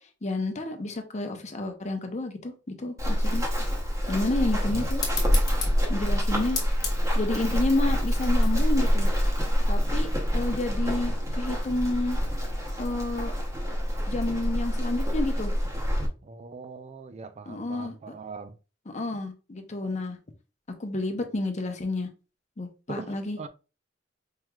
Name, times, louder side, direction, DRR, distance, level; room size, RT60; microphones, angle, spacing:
voice 1, 0.2-2.5 2.8-3.4 4.1-5.0 5.9-6.6 7.1-9.1 9.7-12.2 12.8-13.3 14.1-15.5 17.5-18.1 18.9-20.2 20.8-22.1 22.6-23.4, left 2 dB, 40° left, 0.7 m, -30 dB
Run, 3.0-16.1, equal, 15° right, 0.8 m, -26 dB
sound 1, 5.0-10.1, left 4 dB, 20° left, 1.0 m, -37 dB
voice 2, 16.2-18.6 22.9-23.5, right 4 dB, 35° right, 0.4 m, -41 dB
4.7 x 3.0 x 2.3 m
head